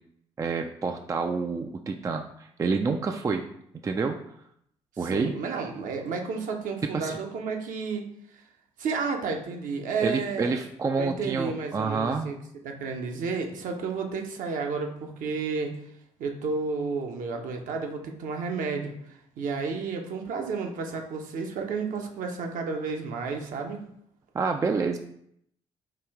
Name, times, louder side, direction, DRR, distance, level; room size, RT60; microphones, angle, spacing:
voice 1, 0.4-3.5 3.8-4.2 5.0-5.3 6.9-7.2 10.0-12.3 24.3-25.0, right 4 dB, 20° right, 5 dB, 0.4 m, -28 dB
voice 2, 5.0-8.1 8.8-10.6 11.0-12.4 12.6-15.7 16.2-23.8, right 4 dB, 55° right, 3 dB, 0.7 m, -31 dB
4.8 x 2.5 x 3.5 m, 0.71 s
figure-of-eight pair, 45°, 17 cm